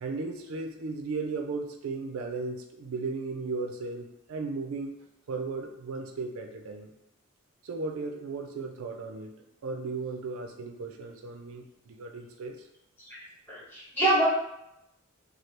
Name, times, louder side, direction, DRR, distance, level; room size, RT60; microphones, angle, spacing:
voice 1, 0.0-5.0 5.3-6.9 7.6-9.4 9.6-12.5, right 3 dB, 70° right, 4 dB, 0.4 m, -36 dB
voice 2, 13.5-14.3, right 1 dB, 10° left, -7 dB, 1.0 m, -25 dB
2.8 x 2.3 x 3.2 m, 0.85 s
head